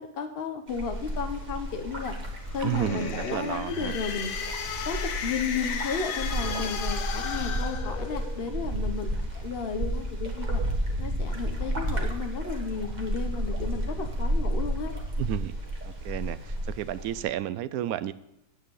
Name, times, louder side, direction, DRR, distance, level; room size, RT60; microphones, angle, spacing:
voice 1, 0.0-2.1 2.5-4.3 4.9-10.6 11.0-14.9, left 5 dB, 45° left, 6 dB, 1.0 m, -33 dB
sound 1, 0.7-17.2, right 1 dB, 30° right, 1.6 m, -32 dB
sound 2, 2.5-8.5, left 7 dB, 65° left, 1.2 m, -35 dB
voice 2, 2.6-4.0 15.2-15.5 15.8-18.1, right 12 dB, 75° right, 16 dB, 1.0 m, -32 dB
9.6 x 8.9 x 5.5 m, 0.82 s
omnidirectional pair, 1.7 m